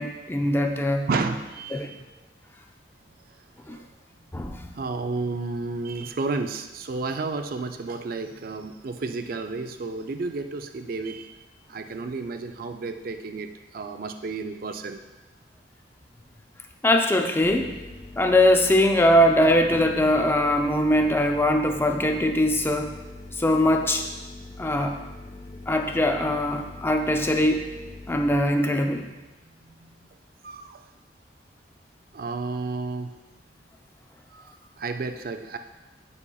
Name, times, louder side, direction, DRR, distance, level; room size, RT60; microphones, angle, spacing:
voice 1, 0.0-1.0 1.7-1.9 3.7-3.8 4.3-4.6 16.8-17.8 18.2-22.9 23.4-24.0 24.6-25.0 25.7-27.7 28.1-29.1, left 1 dB, 15° left, 4 dB, 0.5 m, -21 dB
voice 2, 1.1-2.0 3.7-3.9 4.7-11.3 11.7-15.0 29.7-30.0 30.4-30.8 32.1-33.1 34.3-35.6, right 3 dB, 55° right, 8 dB, 0.4 m, -32 dB
sound 1, 17.4-28.4, left 2 dB, 40° left, 0.8 m, -42 dB
9.7 x 5.4 x 2.3 m, 1.1 s
head